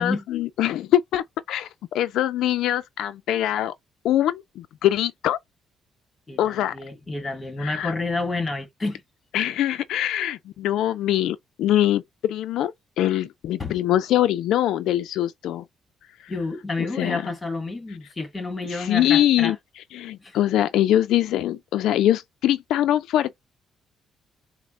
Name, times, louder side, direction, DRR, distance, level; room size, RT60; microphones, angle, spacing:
voice 1, 0.0-3.7 4.0-5.4 6.4-6.7 7.6-7.9 9.3-15.6 16.2-16.3 16.8-17.2 18.7-19.6 19.9-23.3, left 12 dB, 85° left, 0.3 m, -23 dB
voice 2, 6.3-9.0 13.6-13.8 16.3-19.5 20.2-20.4, left 3 dB, 20° left, 1.4 m, -29 dB
4.2 x 2.0 x 3.5 m
cardioid pair, 110°, 0 cm